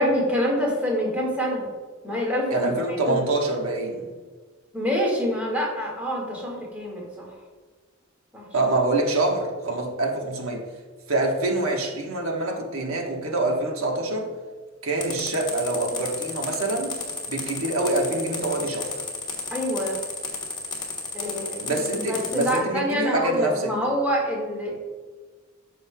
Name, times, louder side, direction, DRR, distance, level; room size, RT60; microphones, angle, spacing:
voice 1, 0.0-1.7 2.0-3.2 4.7-7.3 8.3-8.5 19.5-19.9 21.1-24.8, equal, 5° right, 1.8 m, -26 dB
voice 2, 2.5-4.0 8.5-10.7 11.1-14.3 14.8-17.0 17.3-18.9 21.6-23.7, right 2 dB, 85° right, 1.2 m, -25 dB
sound 1, 15.0-22.6, left 4 dB, 20° left, 1.3 m, -32 dB
13.0 x 5.3 x 2.2 m
head